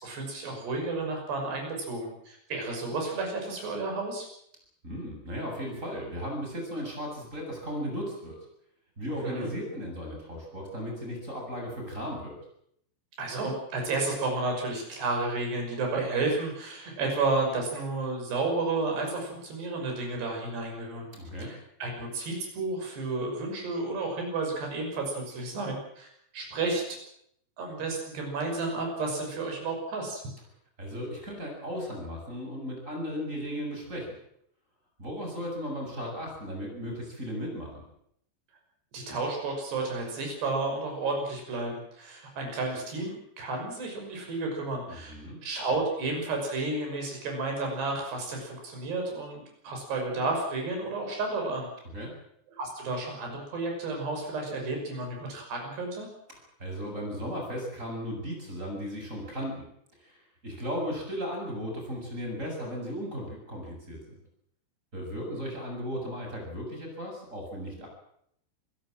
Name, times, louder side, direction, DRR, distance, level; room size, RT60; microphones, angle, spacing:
voice 1, 0.0-4.3 9.2-9.5 13.2-21.1 21.4-26.1 26.3-27.0 27.6-30.2 38.9-45.1 45.4-51.7 52.6-56.1, right 3 dB, 70° right, 2 dB, 8.1 m, -32 dB
voice 2, 4.8-8.4 9.0-12.4 21.1-21.5 30.8-34.1 35.0-37.9 44.9-45.4 51.9-52.1 56.6-59.7 60.0-64.0 64.9-67.9, equal, 15° right, 1 dB, 7.6 m, -36 dB
27.0 x 16.5 x 7.6 m, 0.71 s
omnidirectional pair, 4.9 m